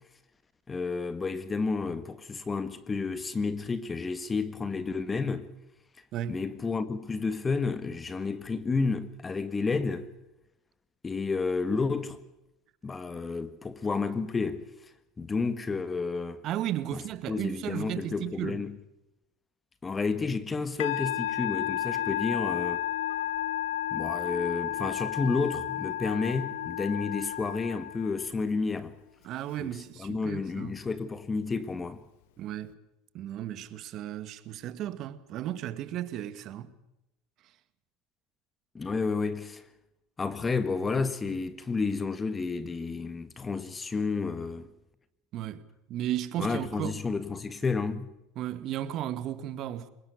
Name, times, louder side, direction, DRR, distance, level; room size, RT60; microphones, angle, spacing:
voice 1, 0.7-5.5 6.3-10.1 11.0-12.2 12.8-14.7 15.2-16.4 16.9-17.0 17.3-18.8 19.8-22.8 23.9-28.9 29.6-32.0 38.7-39.6 40.2-44.7 46.4-48.1, left 4 dB, 20° left, 1.7 m, -31 dB
voice 2, 6.1-6.4 16.4-18.6 29.2-30.8 32.4-32.8 33.1-36.7 45.3-47.0 48.4-49.9, right 12 dB, 50° right, 2.0 m, -35 dB
Musical instrument, 20.8-28.4, left 12 dB, 85° left, 0.7 m, -32 dB
24.0 x 21.0 x 6.8 m
supercardioid pair, 105°, 0 cm